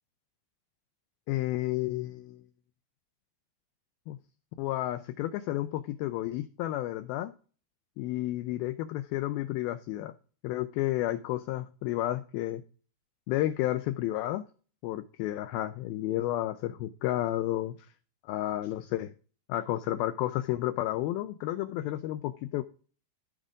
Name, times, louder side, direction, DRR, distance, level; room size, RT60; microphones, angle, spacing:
voice 1, 1.3-2.4 4.1-4.2 4.6-7.3 8.0-10.1 10.4-12.6 13.3-14.4 14.8-17.9 18.3-19.1 19.5-22.6, left 15 dB, 90° left, 11 dB, 2.1 m, -31 dB
14.0 x 5.1 x 3.6 m, 0.38 s
omnidirectional pair, 4.8 m